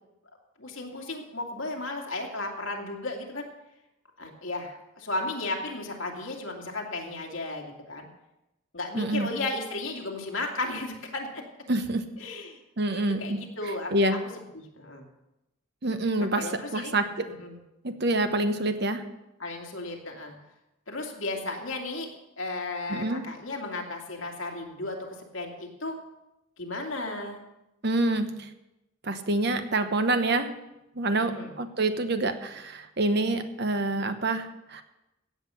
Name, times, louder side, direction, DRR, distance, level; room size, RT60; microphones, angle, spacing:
voice 1, 0.6-3.5 4.2-8.1 8.7-11.4 12.2-12.6 12.9-14.2 14.5-15.1 16.2-16.9 17.4-17.6 19.4-20.3 20.9-22.1 22.4-26.0 26.6-27.4 31.2-31.5, left 2 dB, 70° left, 1 dB, 2.5 m, -34 dB
voice 2, 8.9-9.3 11.7-12.1 12.8-13.4 13.9-14.2 15.8-16.5 16.7-17.3 17.8-19.0 22.9-23.2 27.8-28.5 29.0-30.5 31.0-34.8, right 2 dB, 50° right, 9 dB, 1.0 m, -27 dB
16.0 x 8.1 x 5.7 m, 0.94 s
head